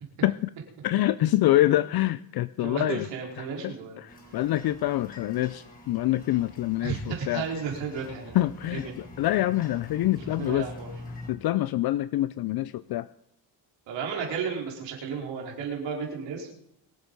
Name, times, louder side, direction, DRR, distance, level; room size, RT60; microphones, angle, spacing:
voice 1, 0.2-0.5 0.8-3.1 3.4-7.5 8.3-10.7 11.3-13.1, left 15 dB, 60° left, 16 dB, 0.5 m, -26 dB
voice 2, 2.6-4.0 6.8-8.4 8.7-9.0 10.2-10.9 13.9-16.5, right 6 dB, 85° right, 0 dB, 4.4 m, -33 dB
sound 1, 4.1-11.3, left 2 dB, 20° left, 4.3 m, -46 dB
23.5 x 8.1 x 5.4 m, 0.74 s
cardioid pair, 100°, 43 cm